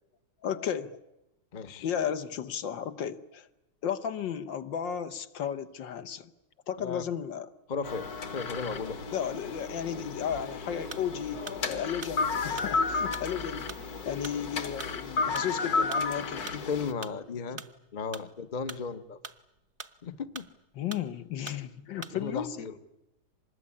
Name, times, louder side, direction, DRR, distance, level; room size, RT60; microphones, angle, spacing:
voice 1, 0.4-0.9 1.8-3.5 3.8-6.3 6.7-7.5 9.1-16.5 17.5-17.6 20.7-22.7, left 8 dB, 70° left, 9 dB, 1.8 m, -34 dB
voice 2, 1.5-1.9 6.8-7.0 7.7-9.0 16.5-17.6 17.9-19.2 20.0-20.5 22.1-22.7, left 5 dB, 30° left, 10 dB, 0.8 m, -35 dB
sound 1, 7.8-16.9, left 4 dB, 50° left, 1.9 m, -33 dB
sound 2, 10.9-11.1 11.5-16.7 17.0-18.3 18.6-20.1 20.4-21.1 21.5-21.6 22.0-22.2, right 5 dB, 35° right, 0.9 m, -44 dB
25.5 x 20.5 x 9.7 m, 0.92 s
omnidirectional pair, 2.1 m